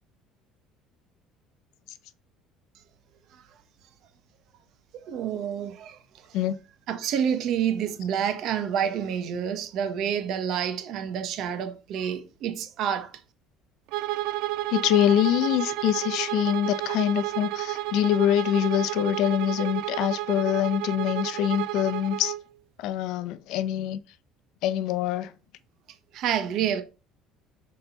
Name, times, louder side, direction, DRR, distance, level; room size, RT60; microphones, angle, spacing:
voice 1, 4.9-6.3 6.9-13.1 26.1-26.8, right 8 dB, 55° right, 1.2 m, -28 dB
Bowed string instrument, 13.9-22.4, right 15 dB, 70° right, 0.4 m, -31 dB
voice 2, 14.7-22.3 22.8-24.0 24.6-25.3, left 11 dB, 65° left, 0.7 m, -24 dB
6.7 x 4.0 x 5.5 m
cardioid pair, 150°, 0 cm